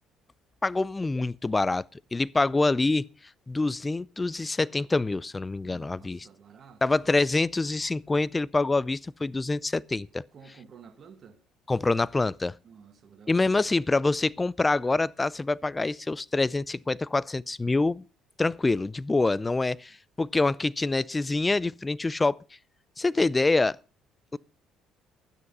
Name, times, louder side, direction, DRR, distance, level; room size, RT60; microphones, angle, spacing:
voice 1, 0.6-1.8 2.1-3.0 3.5-6.3 6.8-10.2 11.7-12.5 13.3-18.0 18.4-22.4 23.0-23.8 24.3-24.4, left 3 dB, 20° left, 0.5 m, -26 dB
voice 2, 5.6-7.0 10.3-11.4 12.6-13.7, right 6 dB, 50° right, 1.8 m, -51 dB
12.0 x 9.8 x 5.4 m
supercardioid pair, 65°, 0 cm